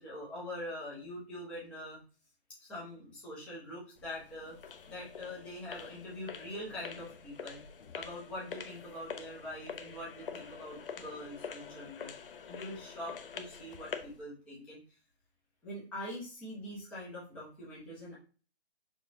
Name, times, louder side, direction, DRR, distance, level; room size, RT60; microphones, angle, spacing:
voice 1, 0.0-2.0 2.6-4.6 4.9-7.6 7.9-12.1 12.5-14.8 15.6-18.1, left 1 dB, 5° left, -7 dB, 0.5 m, -43 dB
sound 1, 4.0-14.2, left 6 dB, 60° left, 0.5 m, -46 dB
5.1 x 2.2 x 2.6 m, 0.37 s
figure-of-eight pair, 140°, 33 cm